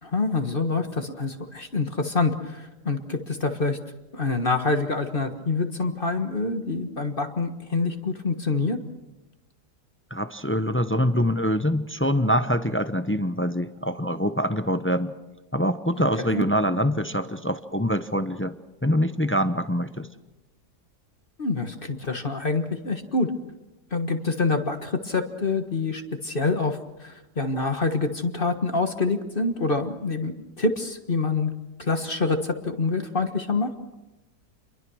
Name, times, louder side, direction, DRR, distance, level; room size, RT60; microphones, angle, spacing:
voice 1, 0.0-3.8 4.1-8.8 16.2-16.4 21.4-23.3 23.9-31.5 31.8-33.7, left 3 dB, 35° left, 7 dB, 1.5 m, -26 dB
voice 2, 10.1-15.1 15.5-18.6 18.8-20.1, equal, 15° left, 10 dB, 0.5 m, -24 dB
28.5 x 22.5 x 6.3 m, 1.0 s
omnidirectional pair, 1.7 m